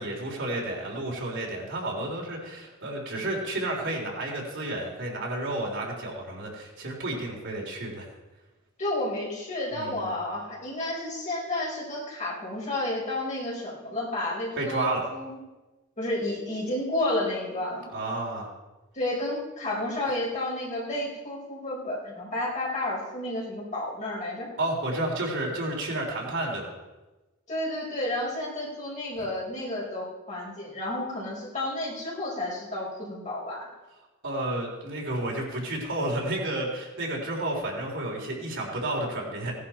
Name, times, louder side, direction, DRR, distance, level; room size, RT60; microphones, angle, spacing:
voice 1, 0.0-8.1 9.7-10.1 14.6-15.0 17.9-18.5 24.6-26.7 34.2-39.5, right 1 dB, 60° right, -1 dB, 3.6 m, -31 dB
voice 2, 8.8-15.4 16.0-17.9 18.9-24.5 27.5-33.7, left 1 dB, 35° left, -4 dB, 4.7 m, -31 dB
17.5 x 11.0 x 4.4 m, 1.1 s
head